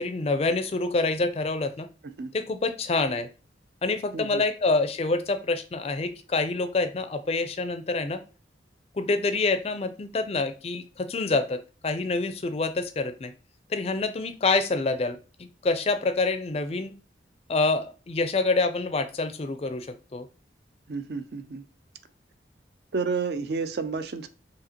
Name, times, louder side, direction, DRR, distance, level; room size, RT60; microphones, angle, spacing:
voice 1, 0.0-1.9 2.3-3.3 3.8-8.2 8.9-13.3 13.7-16.9 17.5-20.3, left 3 dB, 35° left, 0.4 m, -27 dB
voice 2, 20.9-21.6 22.9-24.3, right 4 dB, 60° right, 0.4 m, -31 dB
4.9 x 2.8 x 2.9 m
head